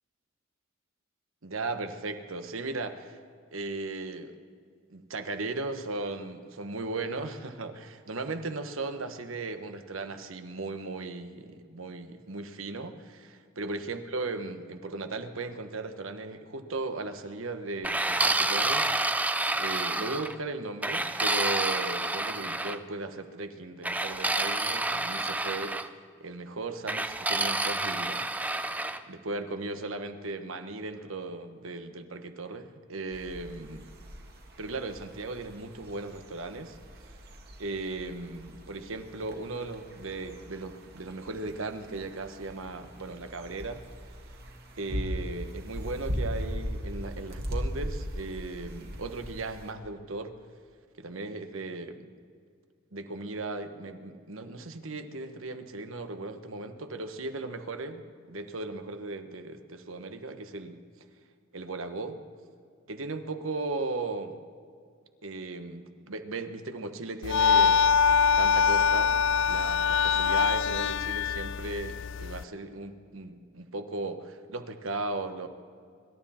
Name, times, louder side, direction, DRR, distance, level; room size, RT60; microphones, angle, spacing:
voice 1, 1.4-3.2 3.5-4.3 4.9-18.9 19.6-25.8 26.2-28.8 29.1-33.9 34.6-36.8 37.0-37.1 37.6-43.8 44.8-50.3 51.0-52.1 52.9-60.8 61.5-62.2 62.9-64.4 65.2-67.8 68.4-69.2 69.5-75.5, right 3 dB, 75° right, 8 dB, 1.2 m, -37 dB
sound 1, 17.8-20.3 20.8-22.8 23.8-25.9 26.9-29.0, right 2 dB, 10° right, 0.5 m, -29 dB
sound 2, 33.1-49.7, equal, 50° right, 2.0 m, -39 dB
sound 3, 67.2-72.4, left 6 dB, 65° left, 0.4 m, -24 dB
25.0 x 12.5 x 4.3 m, 2.2 s
head